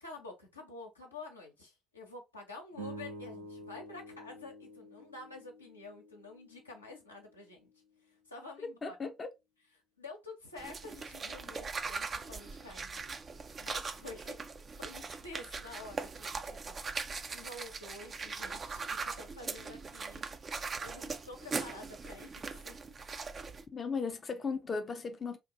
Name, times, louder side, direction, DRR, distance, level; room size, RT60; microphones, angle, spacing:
voice 1, 0.0-7.7 8.1-9.0 9.6-13.2 13.6-14.5 14.8-16.8 17.3-20.2 20.5-22.8, left 2 dB, 85° left, 0.7 m, -49 dB
sound 1, 2.7-7.2, right 1 dB, 90° right, 0.6 m, -48 dB
voice 2, 8.8-9.3 23.7-25.4, left 5 dB, 35° left, 0.5 m, -36 dB
sound 2, 10.6-23.6, right 4 dB, 35° right, 0.4 m, -40 dB
3.7 x 2.5 x 2.7 m
figure-of-eight pair, 50°, 0 cm